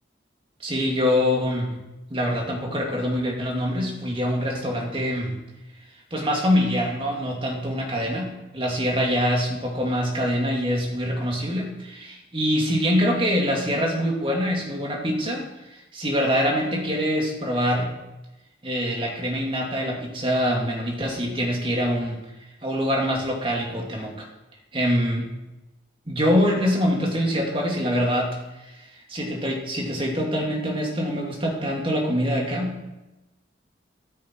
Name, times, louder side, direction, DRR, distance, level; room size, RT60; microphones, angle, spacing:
voice 1, 0.6-1.8 2.1-5.3 6.1-15.4 15.7-17.9 18.6-22.2 22.6-24.3 24.7-25.3 26.1-28.4 28.6-32.9, equal, 30° right, -1 dB, 2.6 m, -24 dB
14.0 x 12.5 x 4.7 m, 1.0 s
head